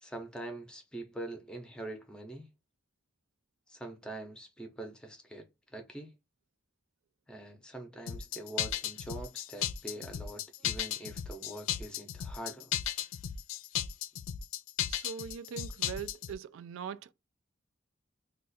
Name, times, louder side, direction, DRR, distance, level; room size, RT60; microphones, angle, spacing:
voice 1, 0.0-2.5 3.7-5.5 5.7-6.1 7.3-12.7, right 2 dB, 5° left, 0.6 m, -44 dB
sound 1, 8.1-16.3, left 10 dB, 80° left, 0.4 m, -35 dB
voice 2, 14.9-17.1, right 7 dB, 80° right, 0.3 m, -41 dB
2.4 x 2.4 x 3.9 m
head